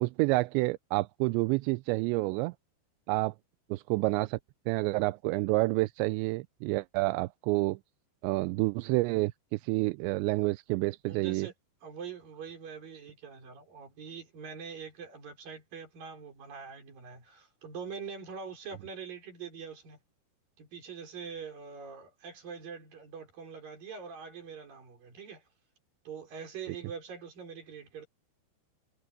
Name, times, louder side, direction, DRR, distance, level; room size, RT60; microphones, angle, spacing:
voice 1, 0.0-2.5 3.1-3.3 3.7-4.4 4.7-7.8 8.2-11.5, right 23 dB, 85° right, 2.8 m, -29 dB
voice 2, 11.1-11.5 11.8-20.0 20.6-25.4 26.0-28.1, right 6 dB, 50° right, 6.3 m, -44 dB
omnidirectional pair, 5.3 m